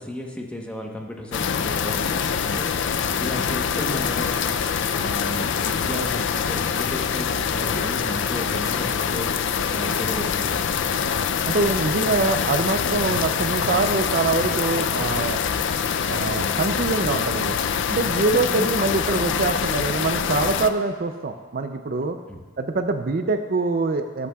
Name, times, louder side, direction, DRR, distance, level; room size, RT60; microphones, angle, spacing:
voice 1, 0.0-2.7 3.2-4.5 4.8-9.4 9.7-11.0 18.3-18.5 22.3-22.4, left 1 dB, 5° left, 0 dB, 1.0 m, -34 dB
sound 1, 1.3-20.7, left 7 dB, 60° left, 0.4 m, -24 dB
voice 2, 11.5-15.4 16.1-17.6 17.9-22.2 22.6-24.3, right 3 dB, 45° right, 7 dB, 0.5 m, -24 dB
20.0 x 8.4 x 2.3 m, 1.4 s
head